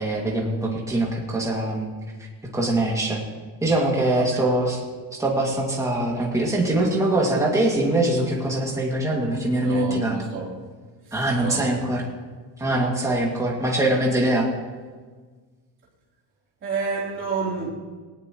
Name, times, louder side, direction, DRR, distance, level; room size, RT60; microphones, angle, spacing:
voice 1, 0.0-1.9 2.5-3.2 3.6-4.8 5.2-10.2 11.1-12.0 12.6-14.5, right 1 dB, 5° right, 2.2 m, -23 dB
voice 2, 9.6-10.6 11.1-11.8 12.6-12.8 16.6-17.7, right 4 dB, 25° right, 3.5 m, -30 dB
19.5 x 18.5 x 3.1 m
cardioid pair, 180°, 43 cm